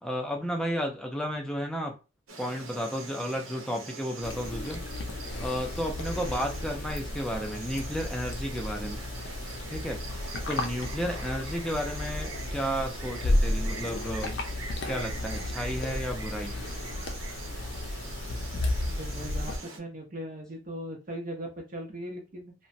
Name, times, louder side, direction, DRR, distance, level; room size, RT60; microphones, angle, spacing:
voice 1, 0.0-1.9 2.4-4.8 5.4-9.0 9.7-10.0 10.5-14.4 14.8-16.6, equal, 5° left, 2 dB, 0.5 m, -33 dB
Insect, 2.3-19.8, right 3 dB, 85° right, 0.8 m, -43 dB
sound 1, 4.2-19.6, left 1 dB, 55° left, 0.5 m, -33 dB
voice 2, 18.8-22.5, equal, 40° right, 1 dB, 0.6 m, -39 dB
3.0 x 2.1 x 2.6 m, 0.31 s
head